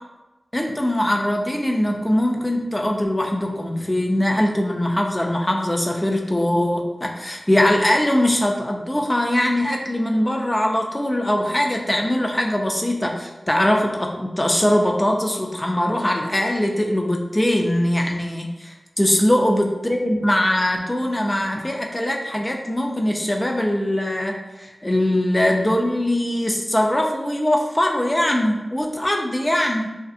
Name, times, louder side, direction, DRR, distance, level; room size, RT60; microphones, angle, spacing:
voice 1, 0.5-30.0, left 1 dB, 20° left, 1 dB, 0.3 m, -21 dB
2.4 x 2.4 x 2.5 m, 1.1 s
wide cardioid pair, 75°, 0 cm